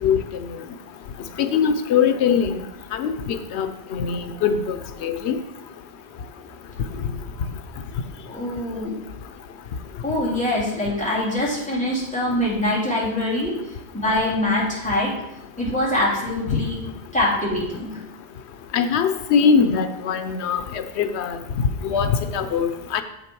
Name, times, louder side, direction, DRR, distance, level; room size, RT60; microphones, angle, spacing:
voice 1, 1.4-2.6 2.9-5.4 16.5-16.6 18.7-21.4 21.8-23.0, left 6 dB, 90° left, 9 dB, 0.9 m, -22 dB
voice 2, 8.3-8.9 10.0-13.8 14.0-15.1 15.6-16.8 17.1-18.0, left 1 dB, 5° left, -7 dB, 2.9 m, -24 dB
7.6 x 6.7 x 4.6 m, 0.90 s
omnidirectional pair, 1.1 m